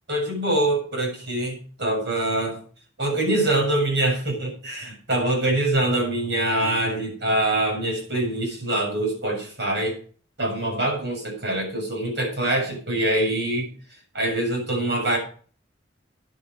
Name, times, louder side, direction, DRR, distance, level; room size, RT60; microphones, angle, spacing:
voice 1, 0.1-2.6 3.0-10.0 10.4-13.7 14.1-15.2, right 1 dB, 65° right, 1 dB, 7.1 m, -24 dB
10.0 x 8.7 x 6.3 m, 0.42 s
head